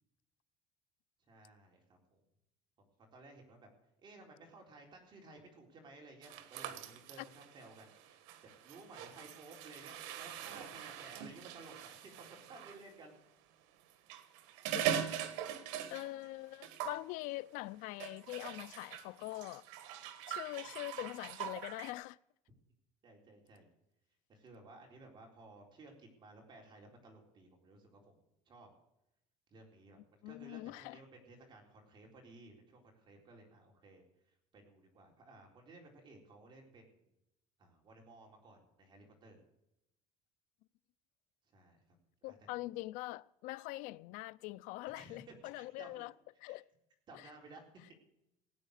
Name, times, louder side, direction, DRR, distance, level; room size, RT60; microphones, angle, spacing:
voice 1, 1.3-2.2 2.8-3.7 4.0-13.1 23.0-23.7 24.3-28.2 28.5-28.7 29.5-34.0 34.5-37.0 37.6-39.4 41.5-41.8 42.2-42.4 45.0-45.9 46.5-46.6 47.1-47.8, right 2 dB, 30° right, 4.0 m, -56 dB
sound 1, 6.2-12.8 13.9-16.3 16.5-17.0 18.0-21.9, right 10 dB, 90° right, 1.5 m, -42 dB
voice 2, 15.9-19.6 20.3-22.2 30.2-31.0 42.2-46.1 46.4-46.6 47.1-47.3, left 19 dB, 70° left, 0.5 m, -43 dB
17.5 x 9.2 x 6.5 m
cardioid pair, 145°, 14 cm